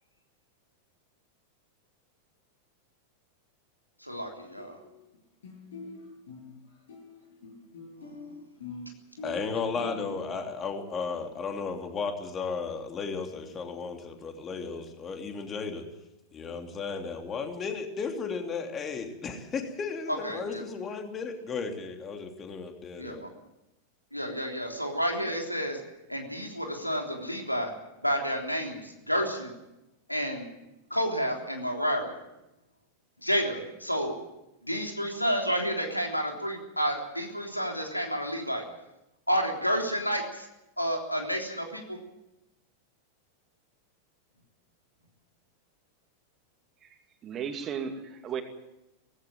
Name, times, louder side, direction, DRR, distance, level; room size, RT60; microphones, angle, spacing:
voice 1, 4.0-4.8 20.1-20.6 23.0-23.3 24.1-25.8 26.1-27.7 28.0-29.5 30.1-30.5 30.9-32.1 33.2-34.1 34.6-38.6 39.3-40.5 40.8-42.0, equal, 90° left, 2 dB, 3.5 m, -30 dB
sound 1, 4.6-5.2 5.4-10.2, left 2 dB, 60° left, 7.8 m, -44 dB
voice 2, 9.2-15.8 16.3-23.2, left 5 dB, 25° left, 4 dB, 3.1 m, -34 dB
voice 3, 47.2-48.4, right 7 dB, 30° right, 6 dB, 2.6 m, -34 dB
18.5 x 16.5 x 9.2 m, 0.92 s
figure-of-eight pair, 90°, 0 cm